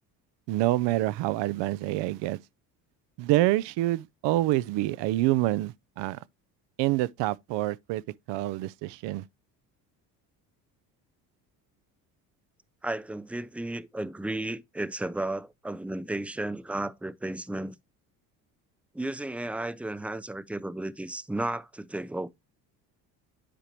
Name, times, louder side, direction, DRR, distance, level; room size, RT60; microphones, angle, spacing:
voice 1, 0.5-2.4 3.2-6.2 6.8-8.0 8.3-9.2, right 16 dB, 65° right, 0.6 m, -27 dB
voice 2, 12.8-17.8 18.9-22.3, right 1 dB, 5° right, 0.6 m, -33 dB
10.0 x 4.8 x 2.9 m
hypercardioid pair, 65°, 47 cm